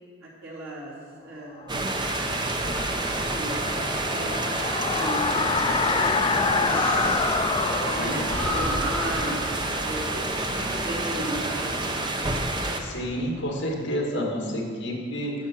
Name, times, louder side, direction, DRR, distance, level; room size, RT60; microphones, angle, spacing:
voice 1, 0.2-0.9 1.2-1.8 2.5-3.6 4.1-7.2 7.6-9.5 9.8-11.9, right 1 dB, 90° right, -5 dB, 2.9 m, -35 dB
sound 1, 1.7-10.4, left 5 dB, 25° left, 0.3 m, -28 dB
sound 2, 1.7-12.8, right 2 dB, 20° right, 0.7 m, -28 dB
Breathing, 5.4-7.6 7.9-8.0 8.3-10.0, left 1 dB, 5° left, 1.6 m, -32 dB
voice 2, 12.8-15.3, equal, 55° left, -1 dB, 2.0 m, -29 dB
10.5 x 7.0 x 6.0 m, 2.2 s
head